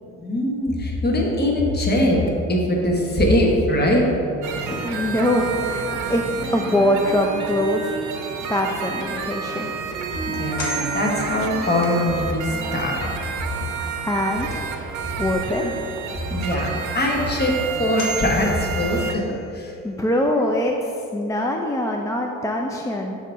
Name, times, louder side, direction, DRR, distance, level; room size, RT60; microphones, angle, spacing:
voice 1, 0.2-2.2 2.5-4.2 10.0-13.0 15.6-15.7 16.3-19.7, left 1 dB, 35° left, -1 dB, 1.2 m, -22 dB
sound 1, 4.4-19.2, right 6 dB, 80° right, 0.6 m, -31 dB
Wind instrument woodwind instrument, 4.6-13.7, right 3 dB, 5° right, 0.9 m, -36 dB
voice 2, 4.7-7.9 8.5-9.7 14.0-14.7 15.2-15.6 19.8-23.2, left 1 dB, 10° left, 1 dB, 0.4 m, -23 dB
sound 2, 10.6-12.2 17.3-17.4 18.0-19.6, equal, 75° left, 1.2 m, -35 dB
6.4 x 3.0 x 5.6 m, 2.8 s
cardioid pair, 90°, 30 cm